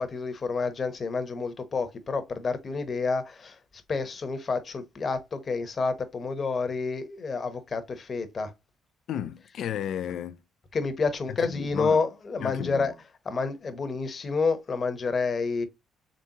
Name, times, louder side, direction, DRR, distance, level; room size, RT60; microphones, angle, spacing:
voice 1, 0.0-3.6 3.9-8.5 10.7-12.9 13.2-15.7, left 4 dB, 40° left, 0.9 m, -29 dB
voice 2, 9.1-10.4 11.4-12.0 12.4-12.9, left 10 dB, 70° left, 0.4 m, -33 dB
3.9 x 3.4 x 2.9 m
cardioid pair, 80°, 0 cm